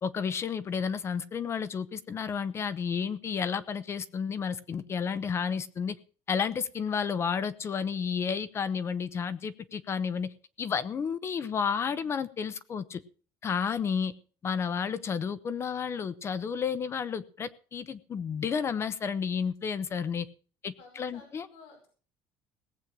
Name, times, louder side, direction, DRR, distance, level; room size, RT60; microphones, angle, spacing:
voice 1, 0.0-6.0 6.3-10.3 10.6-13.0 13.4-14.1 14.4-20.3 20.6-21.5, left 6 dB, 30° left, 16 dB, 0.8 m, -31 dB
voice 2, 20.8-21.9, left 4 dB, 70° left, 2 dB, 5.1 m, -53 dB
18.0 x 8.3 x 6.1 m, 0.40 s
cardioid pair, 155°, 9 cm